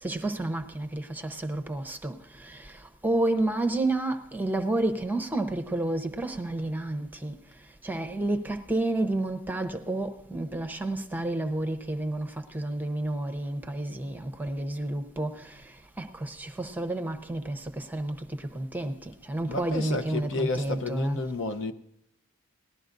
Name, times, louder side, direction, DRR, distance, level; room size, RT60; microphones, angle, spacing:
voice 1, 0.0-21.3, right 2 dB, 10° right, 0.8 m, -31 dB
voice 2, 19.4-21.7, left 2 dB, 60° left, 0.8 m, -31 dB
19.0 x 12.5 x 2.6 m
head